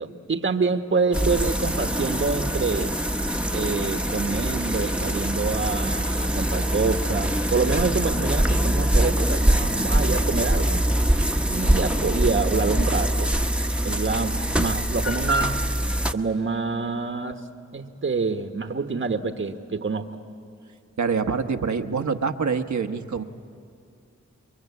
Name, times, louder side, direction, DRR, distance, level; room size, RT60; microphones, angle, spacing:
voice 1, 0.0-2.9 3.5-10.8 11.5-13.3 13.8-15.6 16.1-17.4 17.7-20.1, right 4 dB, 40° right, 7 dB, 1.3 m, -26 dB
sound 1, 1.1-16.1, right 1 dB, 5° right, 1.2 m, -23 dB
voice 2, 21.0-23.2, right 5 dB, 70° right, 7 dB, 1.2 m, -25 dB
29.0 x 22.5 x 8.4 m, 2.4 s
cardioid pair, 45°, 30 cm